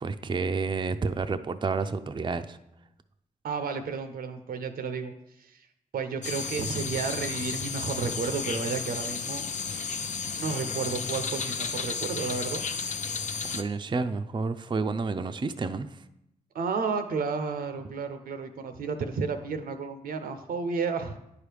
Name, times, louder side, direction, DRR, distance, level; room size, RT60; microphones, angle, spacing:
voice 1, 0.0-2.6 13.5-16.0, right 4 dB, 30° right, 9 dB, 0.4 m, -30 dB
voice 2, 3.4-5.1 5.4-5.6 5.9-9.4 9.8-9.9 10.4-12.6 16.5-21.2, right 5 dB, 75° right, 8 dB, 0.6 m, -32 dB
sound 1, 6.2-13.6, left 5 dB, 55° left, 0.6 m, -33 dB
9.6 x 4.7 x 3.4 m, 0.84 s
supercardioid pair, 40°, 15 cm